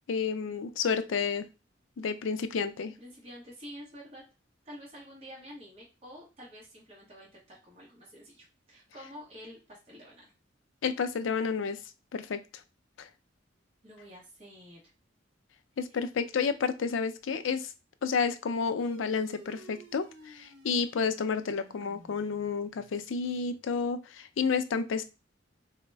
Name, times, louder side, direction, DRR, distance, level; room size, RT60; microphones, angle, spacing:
voice 1, 0.1-1.5 2.0-2.9 10.8-11.8 12.1-12.4 13.0-13.1 15.8-17.7 18.0-25.0, left 5 dB, 85° left, 10 dB, 0.4 m, -30 dB
voice 2, 3.0-4.2 4.6-10.3 13.8-14.8 15.9-16.0, equal, 30° right, -5 dB, 1.1 m, -48 dB
sound 1, 18.8-23.7, right 2 dB, 80° right, 0.8 m, -53 dB
4.0 x 2.1 x 3.3 m, 0.29 s
head